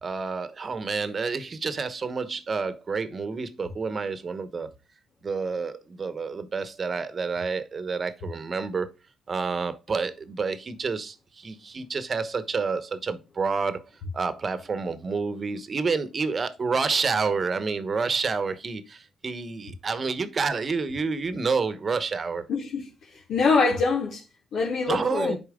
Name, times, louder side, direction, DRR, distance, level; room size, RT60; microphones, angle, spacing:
voice 1, 0.0-4.7 5.2-8.9 9.3-13.8 14.1-22.4 24.9-25.4, right 4 dB, 40° right, 1.0 m, -29 dB
voice 2, 22.5-22.9 23.3-24.2 24.5-25.4, left 4 dB, 75° left, 2.4 m, -24 dB
10.0 x 4.3 x 3.7 m
cardioid pair, 90°, 0 cm